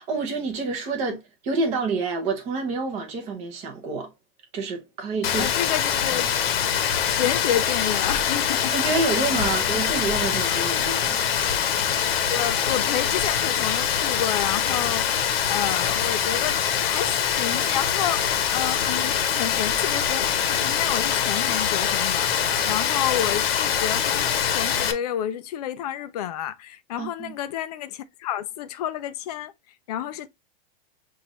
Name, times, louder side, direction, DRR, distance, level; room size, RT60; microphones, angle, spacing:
voice 1, 0.0-4.1 4.5-5.5 8.7-11.2 27.0-27.3, right 3 dB, 25° right, 1.0 m, -28 dB
Rain, 5.2-24.9, left 8 dB, 75° left, 1.0 m, -24 dB
voice 2, 5.4-6.3 6.8-9.6 12.3-29.5 29.9-30.3, left 10 dB, 40° left, 0.5 m, -30 dB
6.1 x 2.6 x 3.0 m
supercardioid pair, 175°, 30 cm